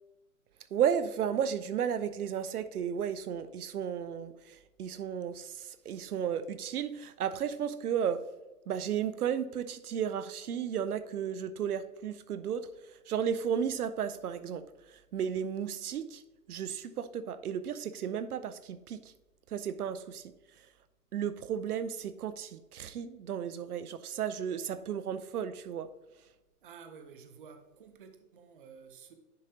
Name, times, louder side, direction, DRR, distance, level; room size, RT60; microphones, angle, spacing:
voice 1, 0.7-8.2 8.7-12.7 13.1-14.6 14.9-16.2 16.5-19.1 19.5-20.2 21.1-25.9, right 8 dB, 75° right, 0.6 m, -33 dB
voice 2, 26.6-29.1, right 6 dB, 35° right, 0.7 m, -52 dB
10.0 x 5.1 x 2.8 m
hypercardioid pair, 160°, 45 cm